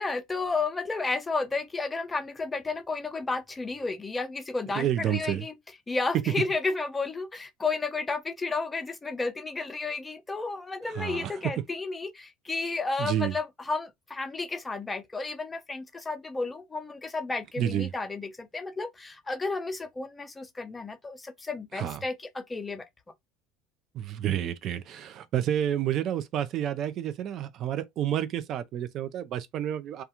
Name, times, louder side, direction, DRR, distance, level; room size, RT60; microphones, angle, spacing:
voice 1, 0.0-5.5 5.9-22.9, left 3 dB, 15° left, 0.5 m, -32 dB
voice 2, 4.8-5.5 6.1-6.2 11.0-11.6 13.0-13.3 17.6-17.9 21.7-22.0 23.9-30.0, right 10 dB, 50° right, 0.3 m, -29 dB
2.3 x 2.3 x 2.8 m
supercardioid pair, 105°, 0 cm